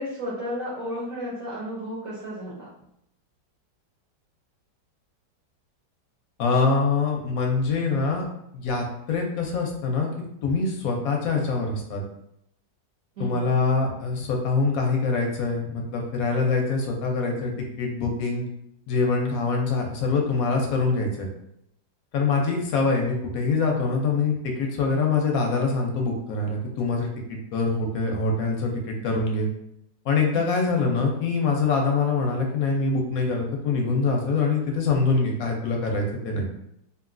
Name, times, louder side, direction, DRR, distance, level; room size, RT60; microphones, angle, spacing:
voice 1, 0.0-2.7 13.2-13.5 30.6-30.7, equal, 60° right, -5 dB, 1.0 m, -33 dB
voice 2, 6.4-8.3 8.5-10.1 10.4-12.0 13.2-17.5 17.8-18.5 18.9-21.3 22.1-29.5 30.1-36.5, left 4 dB, 70° left, 1 dB, 0.9 m, -24 dB
2.9 x 2.5 x 2.5 m, 0.78 s
omnidirectional pair, 1.9 m